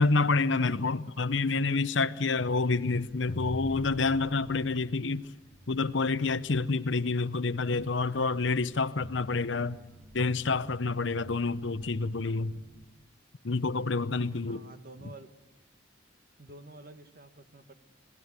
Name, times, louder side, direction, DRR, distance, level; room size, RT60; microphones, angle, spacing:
voice 1, 0.0-5.3 5.7-9.8 10.1-12.6 13.4-14.6, left 3 dB, 75° left, 0.8 m, -28 dB
sound 1, 2.4-12.9, right 1 dB, 25° right, 1.5 m, -52 dB
sound 2, 3.3-5.1, equal, 30° left, 1.2 m, -41 dB
voice 2, 14.4-15.3 16.4-17.7, right 2 dB, 50° right, 1.7 m, -49 dB
26.5 x 19.0 x 8.1 m
head